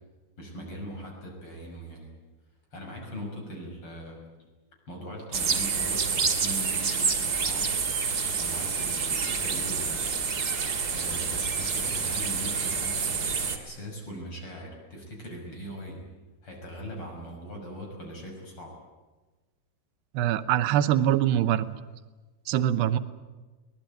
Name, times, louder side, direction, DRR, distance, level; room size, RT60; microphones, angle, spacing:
voice 1, 0.4-2.1 2.7-4.3 4.9-7.7 8.4-10.1 10.9-16.1 16.4-18.8, equal, 30° left, 1 dB, 6.7 m, -40 dB
sound 1, 5.3-13.6, right 5 dB, 35° right, 1.5 m, -28 dB
voice 2, 20.1-21.7 22.5-23.0, right 11 dB, 80° right, 12 dB, 3.0 m, -23 dB
23.0 x 20.0 x 9.1 m, 1.2 s
omnidirectional pair, 4.8 m